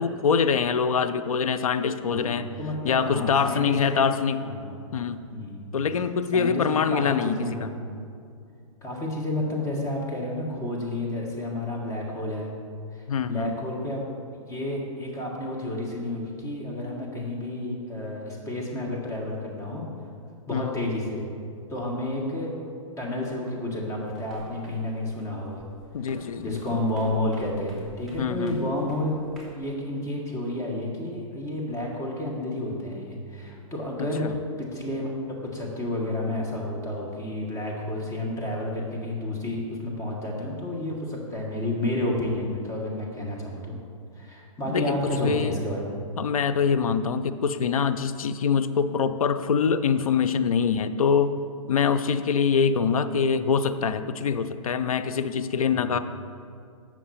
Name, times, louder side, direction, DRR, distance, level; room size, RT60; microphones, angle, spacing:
voice 1, 0.0-2.5 2.8-4.4 4.9-5.2 5.7-7.8 13.1-13.6 20.5-20.8 25.9-26.6 28.2-28.8 34.0-34.3 44.7-45.5 46.2-51.3 51.7-56.0, left 6 dB, 85° left, 11 dB, 0.5 m, -24 dB
voice 2, 2.1-4.0 4.4-4.7 5.3-5.7 6.3-7.8 8.8-12.5 12.9-14.1 14.5-19.9 20.5-21.2 21.7-22.5 23.0-25.6 26.4-29.2 29.5-35.1 35.4-43.7 44.1-45.8 55.7-56.0, left 1 dB, 15° left, -2 dB, 1.5 m, -30 dB
sound 1, 24.0-29.6, right 1 dB, ahead, 1.9 m, -49 dB
7.6 x 6.0 x 4.3 m, 2.4 s
hypercardioid pair, 125°, 18 cm